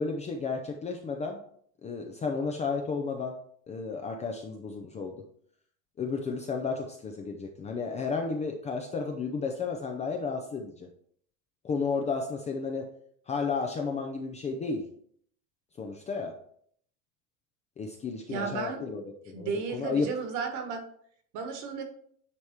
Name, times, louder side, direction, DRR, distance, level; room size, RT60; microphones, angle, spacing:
voice 1, 0.0-1.4 1.8-3.4 3.7-5.2 6.0-10.9 11.6-12.9 13.3-14.9 15.8-16.3 17.8-20.1, left 4 dB, 15° left, 3 dB, 0.5 m, -32 dB
voice 2, 18.3-18.8 19.3-20.8 21.3-21.8, right 5 dB, 50° right, 5 dB, 1.6 m, -33 dB
9.7 x 3.5 x 4.5 m, 0.62 s
supercardioid pair, 155°, 41 cm